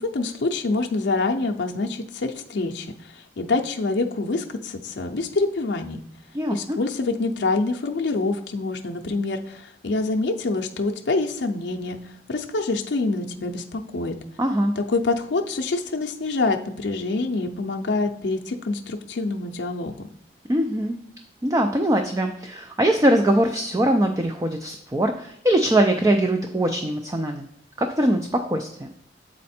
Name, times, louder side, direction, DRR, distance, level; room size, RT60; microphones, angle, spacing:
voice 1, 0.0-6.0 6.5-12.0 12.3-14.2 14.8-20.1, left 3 dB, 80° left, 3 dB, 0.5 m, -26 dB
voice 2, 6.3-6.8 14.4-14.7 20.5-21.0 21.4-27.5 27.8-28.9, right 1 dB, 20° right, 5 dB, 0.4 m, -22 dB
7.3 x 4.3 x 4.2 m, 0.74 s
head